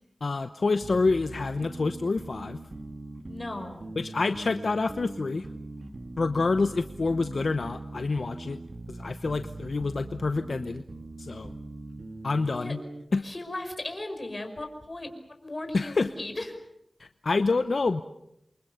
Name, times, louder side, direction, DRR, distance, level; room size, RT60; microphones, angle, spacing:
voice 1, 0.2-2.6 4.0-5.5 6.2-8.6 8.9-10.8 11.2-11.5 12.2-12.8 13.1-13.2 15.7-16.1 17.0-18.0, left 3 dB, 70° left, 9 dB, 0.9 m, -27 dB
sound 1, 0.8-13.1, right 2 dB, 50° right, 2.2 m, -41 dB
voice 2, 3.3-3.9 12.6-12.7 13.2-15.1 15.4-16.5, left 2 dB, 35° left, 6 dB, 5.3 m, -36 dB
28.5 x 24.0 x 6.9 m, 0.80 s
wide cardioid pair, 85°, 0 cm